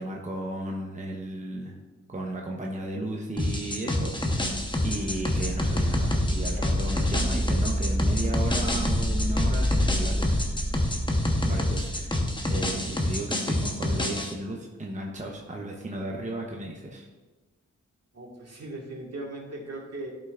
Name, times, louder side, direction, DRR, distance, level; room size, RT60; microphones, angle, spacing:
voice 1, 0.0-1.8 2.1-10.4 11.4-17.1, right 1 dB, 25° right, 0 dB, 0.9 m, -35 dB
sound 1, 3.4-14.3, left 1 dB, 15° left, 1.0 m, -28 dB
sound 2, 4.2-13.0, equal, ahead, 0.3 m, -29 dB
voice 2, 18.1-20.1, right 2 dB, 55° right, -1 dB, 1.8 m, -38 dB
12.0 x 5.6 x 2.5 m, 1.3 s
cardioid pair, 70°, 30 cm